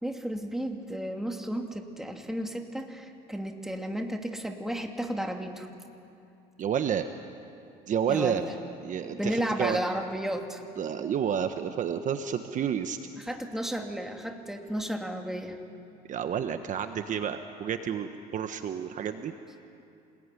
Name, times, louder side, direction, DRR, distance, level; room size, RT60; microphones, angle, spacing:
voice 1, 0.0-5.7 8.1-8.5 9.2-10.6 13.2-15.6, equal, ahead, 3 dB, 2.6 m, -33 dB
voice 2, 6.6-7.1 7.9-8.4 8.8-9.8 10.8-13.0 16.1-19.3, right 8 dB, 45° right, 8 dB, 1.2 m, -30 dB
27.0 x 20.0 x 9.9 m, 2.8 s
cardioid pair, 110°, 18 cm